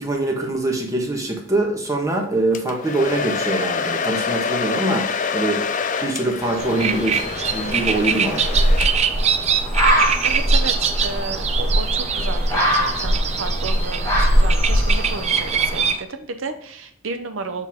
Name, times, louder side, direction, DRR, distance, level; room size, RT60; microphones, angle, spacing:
voice 1, 0.0-5.6 6.0-8.6, right 2 dB, 15° right, 1 dB, 1.3 m, -23 dB
Domestic sounds home sounds, 2.5-9.2, left 5 dB, 40° left, 0.5 m, -27 dB
sound 1, 6.4-16.0, right 7 dB, 35° right, 0.4 m, -24 dB
sound 2, 6.6-15.9, equal, 15° left, 1.7 m, -21 dB
voice 2, 10.2-17.7, right 4 dB, 75° right, 8 dB, 0.7 m, -32 dB
7.0 x 4.5 x 3.6 m, 0.69 s
head